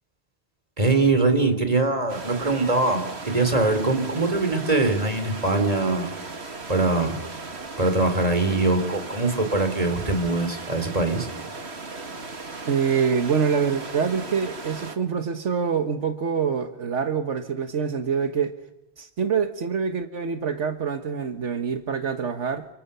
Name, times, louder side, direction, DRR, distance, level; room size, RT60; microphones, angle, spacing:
voice 1, 0.8-6.1 6.7-7.2 7.8-11.3, right 3 dB, 30° right, 7 dB, 3.7 m, -22 dB
sound 1, 2.1-15.0, right 3 dB, 65° right, 2.3 m, -37 dB
voice 2, 12.6-18.5 19.0-22.7, right 6 dB, 85° right, 8 dB, 1.7 m, -25 dB
30.0 x 27.5 x 6.9 m, 0.90 s
omnidirectional pair, 1.2 m